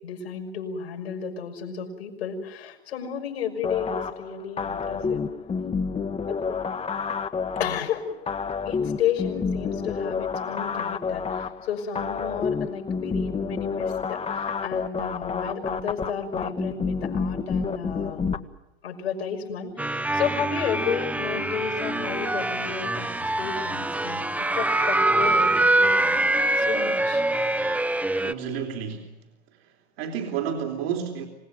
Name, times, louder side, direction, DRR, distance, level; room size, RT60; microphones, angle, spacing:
voice 1, 0.0-5.2 6.3-6.4 7.6-8.0 8.6-18.4 18.8-23.1 23.4-24.3 24.6-26.2 26.6-27.2, left 7 dB, 80° left, 6.2 m, -32 dB
sound 1, 3.6-18.4, left 5 dB, 20° left, 1.5 m, -29 dB
sound 2, 19.8-28.3, right 2 dB, 5° right, 1.0 m, -24 dB
voice 2, 28.2-29.2 29.6-31.3, right 8 dB, 70° right, 3.8 m, -31 dB
26.5 x 19.0 x 9.4 m
hypercardioid pair, 90°, 32 cm